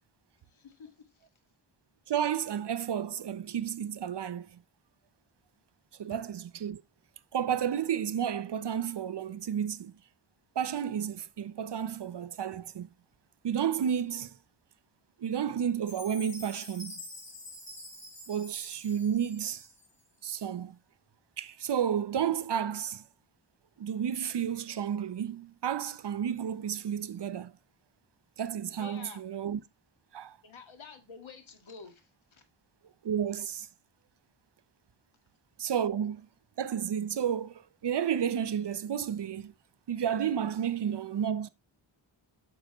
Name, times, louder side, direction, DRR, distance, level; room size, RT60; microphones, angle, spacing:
voice 1, 0.5-1.3 28.8-29.2 30.4-32.4, left 5 dB, 75° left, 1.9 m, -50 dB
voice 2, 2.1-4.5 6.0-6.8 7.3-9.9 10.6-12.9 13.4-14.3 15.2-17.0 18.3-19.7 20.2-20.7 21.4-23.0 23.8-27.5 28.4-29.6 30.1-30.4 33.0-33.7 35.6-36.3 36.6-39.5 39.9-41.5, right 8 dB, 60° right, 0.6 m, -31 dB
Chime, 15.9-20.1, left 1 dB, 25° left, 4.3 m, -47 dB
8.6 x 6.4 x 3.0 m
wide cardioid pair, 100°, 48 cm